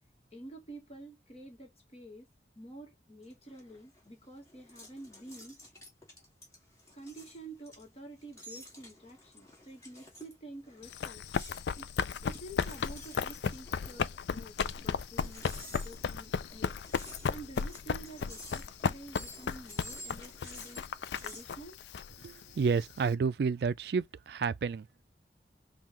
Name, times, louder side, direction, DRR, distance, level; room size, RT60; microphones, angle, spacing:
voice 1, 0.3-2.3 2.5-5.6 6.9-11.3 11.8-11.9 12.2-16.8 17.3-20.8 21.2-21.8, right 2 dB, 35° left, 1.4 m, -49 dB
sound 1, 3.2-21.5, left 1 dB, 15° left, 2.0 m, -52 dB
Run, 10.8-23.1, left 6 dB, 75° left, 0.4 m, -35 dB
voice 2, 22.2-25.0, right 5 dB, 60° right, 0.3 m, -30 dB
5.5 x 2.4 x 3.0 m
head